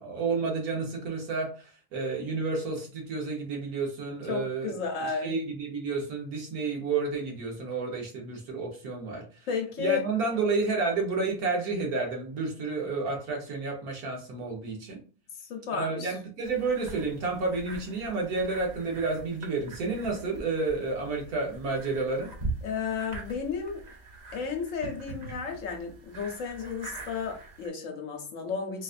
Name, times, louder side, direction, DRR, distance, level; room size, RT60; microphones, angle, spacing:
voice 1, 0.0-4.7 5.2-9.2 9.8-15.0 15.7-22.3, right 3 dB, 85° right, 1.5 m, -30 dB
voice 2, 4.3-5.4 9.5-10.0 15.5-16.1 22.6-23.8 24.3-28.8, left 6 dB, 65° left, 1.0 m, -33 dB
sound 1, 16.4-27.7, right 3 dB, 45° right, 0.6 m, -42 dB
4.0 x 2.5 x 2.4 m
omnidirectional pair, 1.5 m